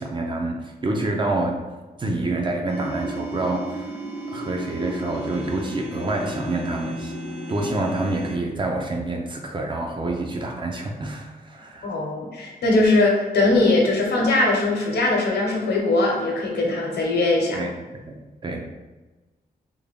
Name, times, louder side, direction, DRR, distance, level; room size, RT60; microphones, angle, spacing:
voice 1, 0.0-1.6 2.0-4.0 4.3-7.1 7.5-11.9 17.5-18.2 18.4-18.6, right 2 dB, 30° right, 1 dB, 0.4 m, -27 dB
sound 1, 2.7-8.4, equal, 45° right, 1.3 m, -33 dB
voice 2, 11.8-17.6, left 2 dB, 85° left, -1 dB, 0.9 m, -20 dB
3.5 x 2.2 x 3.5 m, 1.2 s
wide cardioid pair, 165°, 17 cm